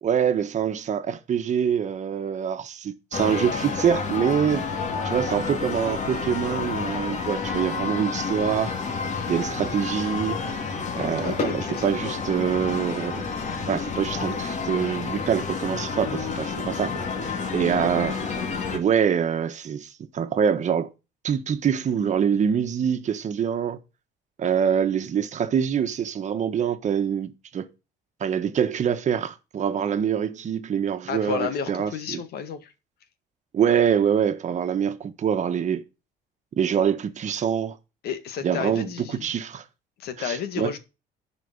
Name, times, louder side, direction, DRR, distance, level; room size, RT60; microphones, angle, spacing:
voice 1, 0.0-4.7 5.0-8.7 9.3-10.4 11.0-13.3 13.7-16.9 17.5-18.2 18.7-20.9 21.2-23.8 24.4-27.7 28.2-32.2 33.5-35.8 36.6-37.8 38.4-39.6 40.2-40.7, right 8 dB, 45° right, 1.4 m, -25 dB
sound 1, 3.1-18.8, left 5 dB, 45° left, 2.3 m, -30 dB
voice 2, 11.2-12.1 31.1-32.7 38.0-39.3 40.0-40.8, left 7 dB, 70° left, 1.8 m, -32 dB
10.5 x 5.2 x 6.6 m
cardioid pair, 110°, 17 cm